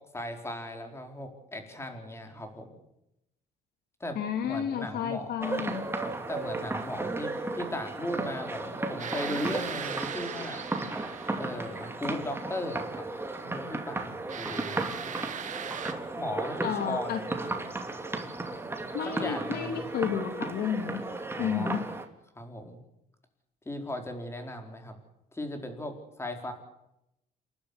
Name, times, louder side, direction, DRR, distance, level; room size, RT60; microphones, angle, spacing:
voice 1, 0.1-2.8 4.0-4.2 4.4-5.3 6.0-10.7 11.4-13.0 13.4-14.8 16.2-17.4 19.0-19.9 21.3-21.8 22.3-22.8 23.7-24.9 25.3-26.5, left 1 dB, 15° left, 5 dB, 4.6 m, -37 dB
voice 2, 4.1-5.9 16.6-17.2 18.9-21.0 21.4-21.8, left 8 dB, 70° left, 7 dB, 2.7 m, -31 dB
sound 1, 5.4-22.1, right 2 dB, 15° right, 2.7 m, -35 dB
sound 2, 9.0-12.2 14.3-15.9, right 8 dB, 45° right, 2.1 m, -39 dB
28.5 x 12.0 x 10.0 m, 0.84 s
cardioid pair, 110°, 17 cm